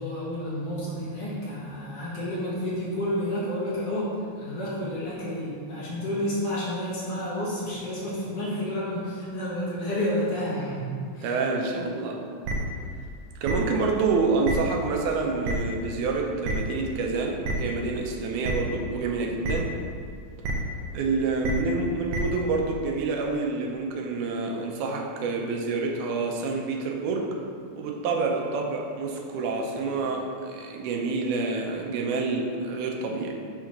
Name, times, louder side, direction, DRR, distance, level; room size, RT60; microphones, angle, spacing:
voice 1, 0.0-4.1 4.4-11.3, left 1 dB, 55° left, -8 dB, 2.3 m, -30 dB
voice 2, 11.2-12.2 13.4-19.8 20.9-27.3 27.8-33.3, right 4 dB, 90° right, 1 dB, 2.2 m, -28 dB
sound 1, 12.4-12.5 13.4-13.5 14.4-14.5 15.4-15.5 16.4-16.5 17.4-17.5 18.4-18.5 19.4-19.5 20.4-20.5 21.4-21.5 22.1-22.2, right 3 dB, 70° right, 1.8 m, -28 dB
6.1 x 3.8 x 5.9 m, 2.2 s
omnidirectional pair, 3.4 m